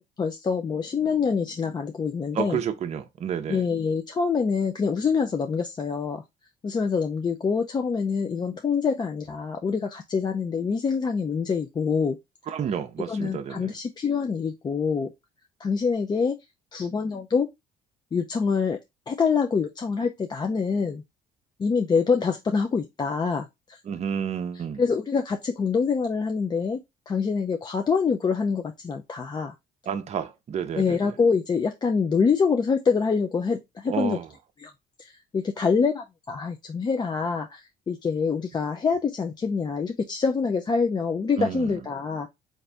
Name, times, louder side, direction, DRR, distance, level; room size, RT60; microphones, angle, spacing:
voice 1, 0.2-2.6 3.5-6.2 6.6-12.2 13.1-15.1 15.6-16.4 16.7-17.5 18.1-18.8 19.1-21.0 21.6-23.8 24.8-26.8 27.1-29.5 30.8-34.2 34.6-34.7 35.0-42.3, left 5 dB, 25° left, 0.4 m, -25 dB
voice 2, 2.3-3.6 12.5-13.7 23.9-24.8 29.9-31.1 33.9-34.3 41.4-41.8, right 8 dB, 40° right, 0.6 m, -30 dB
3.8 x 2.6 x 3.3 m
cardioid pair, 110°, 17 cm